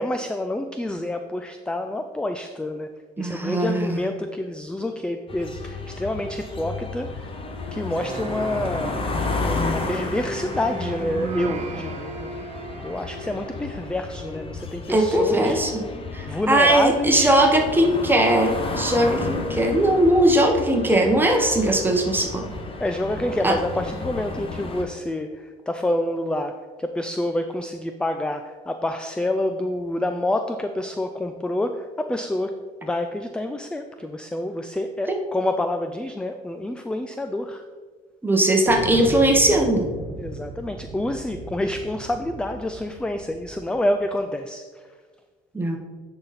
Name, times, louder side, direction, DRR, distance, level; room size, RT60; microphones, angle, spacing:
voice 1, 0.0-7.3 7.7-9.0 9.4-12.3 12.8-15.6 16.3-17.4 22.8-32.5 32.8-37.7 40.2-44.8, left 1 dB, 5° left, 7 dB, 0.3 m, -28 dB
voice 2, 3.2-4.0 14.9-15.8 16.1-22.5 23.4-23.5 35.1-35.2 38.2-39.9 45.5-45.8, right 1 dB, 10° right, 2 dB, 1.1 m, -19 dB
sound 1, 5.3-24.8, left 3 dB, 30° left, 1.0 m, -32 dB
sound 2, 8.0-13.9, right 4 dB, 40° right, 0.7 m, -36 dB
Thunder, 38.7-43.8, right 3 dB, 70° right, 1.2 m, -36 dB
9.6 x 4.0 x 4.1 m, 1.5 s
cardioid pair, 110°, 17 cm